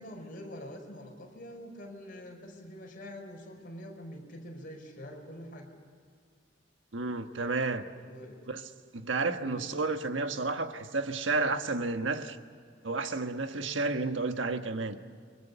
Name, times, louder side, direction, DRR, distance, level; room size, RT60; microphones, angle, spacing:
voice 1, 0.0-5.7 8.0-8.4 9.4-9.7, equal, 50° left, 5.3 m, -45 dB
voice 2, 6.9-7.8 8.5-8.6 8.9-12.4 12.8-15.0, right 3 dB, 80° right, 1.4 m, -31 dB
29.0 x 24.0 x 7.0 m
head